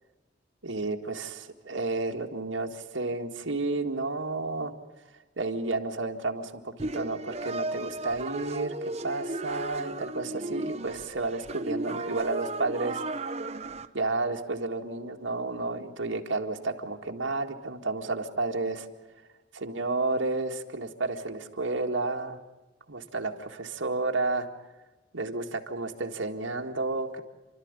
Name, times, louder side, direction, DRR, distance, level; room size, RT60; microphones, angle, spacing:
voice 1, 0.6-4.7 5.4-13.0 13.9-18.9 19.5-22.4 22.9-24.5 25.1-27.2, right 3 dB, 85° right, 3 dB, 1.9 m, -31 dB
sound 1, 6.8-13.9, right 2 dB, 35° right, 0.9 m, -35 dB
29.5 x 13.0 x 9.8 m, 1.1 s
head